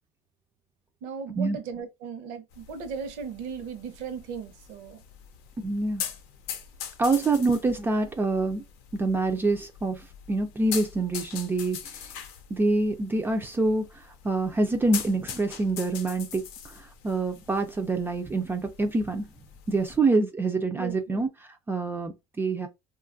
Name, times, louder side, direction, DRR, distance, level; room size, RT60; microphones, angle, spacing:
voice 1, 1.0-5.0 20.7-21.2, right 6 dB, 75° right, 0.7 m, -37 dB
sound 1, 2.5-20.0, left 8 dB, 85° left, 0.6 m, -42 dB
voice 2, 5.6-6.0 7.0-8.6 8.9-12.1 12.5-19.3 19.7-22.7, right 3 dB, 15° right, 0.3 m, -26 dB
2.8 x 2.3 x 2.5 m
cardioid pair, 120°, 13 cm